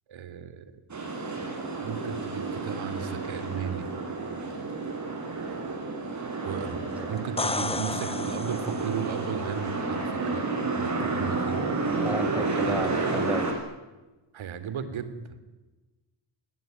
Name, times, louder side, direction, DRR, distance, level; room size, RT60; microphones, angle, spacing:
voice 1, 0.1-0.7 1.8-3.9 6.4-10.4 10.7-11.6 12.6-12.8 14.3-15.4, right 7 dB, 75° right, 12 dB, 3.4 m, -35 dB
sound 1, 0.9-13.5, right 3 dB, 35° right, 7.3 m, -31 dB
sound 2, 7.2-9.1 12.8-12.9, left 3 dB, 10° left, 0.9 m, -32 dB
voice 2, 7.6-8.0 12.0-13.5, equal, 5° right, 11 dB, 1.6 m, -34 dB
29.0 x 21.5 x 9.5 m, 1.2 s
wide cardioid pair, 145°, 47 cm